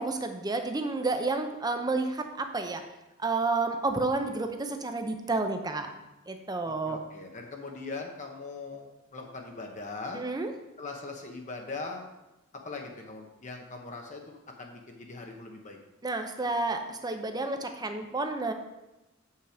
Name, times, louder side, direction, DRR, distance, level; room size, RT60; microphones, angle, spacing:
voice 1, 0.0-2.8 3.2-5.9 6.3-7.0 10.1-10.5 16.0-18.5, right 3 dB, 20° right, 6 dB, 0.7 m, -30 dB
voice 2, 6.6-10.2 10.8-12.1 12.5-15.8, left 3 dB, 35° left, 2 dB, 0.9 m, -41 dB
7.5 x 5.6 x 5.0 m, 0.99 s
head